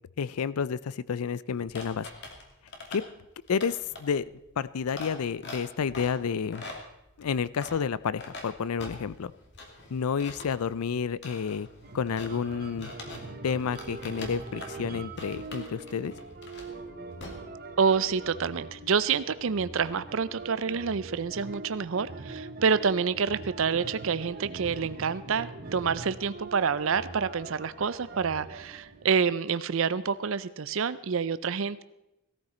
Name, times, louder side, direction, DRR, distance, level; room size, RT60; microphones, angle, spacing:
voice 1, 0.2-2.1 2.9-3.0 3.5-4.3 4.6-6.6 7.2-9.3 9.9-11.7 11.9-12.9 13.4-16.1, left 6 dB, 80° left, 19 dB, 0.4 m, -30 dB
sound 1, 1.7-13.3 13.6-14.8 15.2-16.9 17.1-17.3, left 2 dB, 50° left, 2.4 m, -44 dB
sound 2, 11.8-29.1, right 3 dB, 45° right, 1.0 m, -43 dB
voice 2, 17.8-31.8, right 6 dB, 60° right, 15 dB, 0.5 m, -28 dB
17.5 x 13.5 x 4.3 m, 0.92 s
head